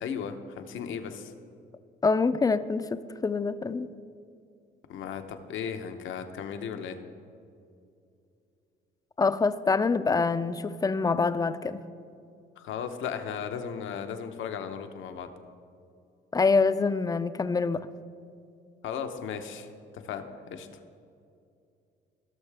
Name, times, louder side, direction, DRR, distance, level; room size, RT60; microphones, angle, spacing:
voice 1, 0.0-1.3 4.9-7.0 12.6-15.3 18.8-19.7 19.9-20.7, left 7 dB, 80° left, 7 dB, 0.9 m, -36 dB
voice 2, 2.0-3.9 9.2-11.8 16.3-17.9, left 4 dB, 20° left, 13 dB, 0.4 m, -25 dB
17.5 x 6.4 x 3.4 m, 2.5 s
cardioid pair, 90°, 20 cm